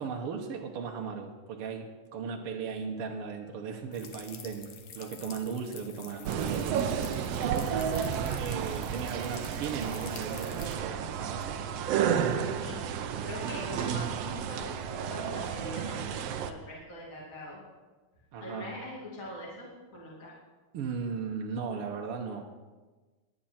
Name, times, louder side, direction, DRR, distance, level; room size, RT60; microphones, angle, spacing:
voice 1, 0.0-6.8 7.1-11.6 18.3-18.7 20.7-22.5, right 6 dB, 60° right, 1 dB, 1.5 m, -37 dB
sound 1, 3.9-10.7, left 7 dB, 60° left, 1.8 m, -48 dB
sound 2, 6.2-16.5, right 8 dB, 75° right, 1.4 m, -32 dB
voice 2, 12.3-12.8 13.2-17.6 18.4-20.3, left 1 dB, 25° left, -5 dB, 2.7 m, -43 dB
22.0 x 8.8 x 4.3 m, 1.3 s
omnidirectional pair, 3.7 m